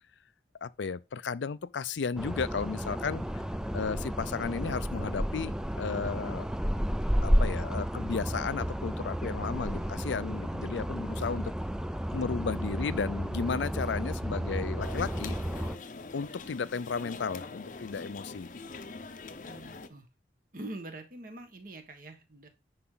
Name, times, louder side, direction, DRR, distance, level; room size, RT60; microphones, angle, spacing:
voice 1, 0.6-3.4 3.7-6.5 7.2-11.5 12.1-15.3 16.1-18.5, left 5 dB, 85° left, 0.5 m, -34 dB
sound 1, 2.2-15.8, equal, 5° right, 0.3 m, -32 dB
sound 2, 14.8-19.9, left 3 dB, 45° left, 0.7 m, -43 dB
voice 2, 19.4-20.1 20.5-22.5, right 2 dB, 50° right, 1.6 m, -44 dB
9.8 x 4.9 x 3.9 m
head